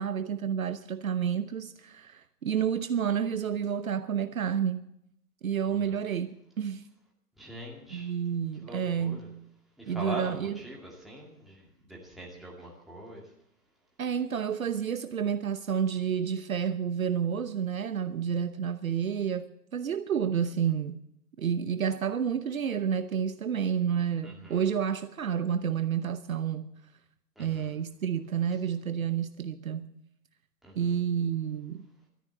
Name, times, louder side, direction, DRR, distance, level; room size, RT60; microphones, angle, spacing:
voice 1, 0.0-4.8 5.4-6.8 7.9-9.3 9.9-10.5 14.0-21.0 21.4-26.7 27.4-29.9 30.8-31.9, right 8 dB, 60° right, 0.9 m, -30 dB
voice 2, 7.4-8.1 8.6-9.3 9.8-13.3 24.2-24.6 27.4-27.7 30.6-31.0, right 1 dB, ahead, 2.3 m, -42 dB
13.0 x 10.5 x 8.3 m
figure-of-eight pair, 140°, 48 cm